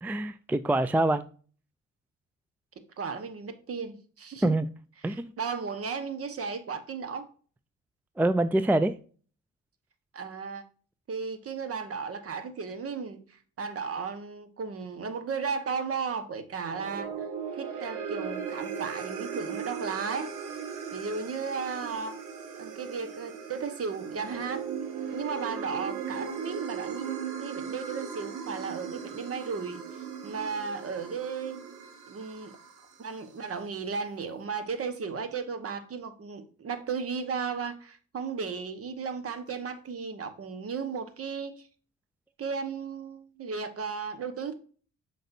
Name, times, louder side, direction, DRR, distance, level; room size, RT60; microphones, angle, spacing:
voice 1, 0.0-1.2 4.4-4.7 5.0-5.3 8.2-9.0, right 1 dB, 5° right, 0.3 m, -25 dB
voice 2, 3.0-4.5 5.0-7.3 10.1-10.6 11.1-13.2 13.6-17.1 17.5-20.3 20.9-22.2 22.6-24.7 25.1-29.8 30.2-31.6 32.1-32.6 33.0-41.7 42.4-44.5, right 5 dB, 50° right, 1.3 m, -35 dB
sound 1, 16.6-33.1, right 6 dB, 85° right, 1.4 m, -38 dB
7.8 x 5.3 x 2.7 m
cardioid pair, 90°, 30 cm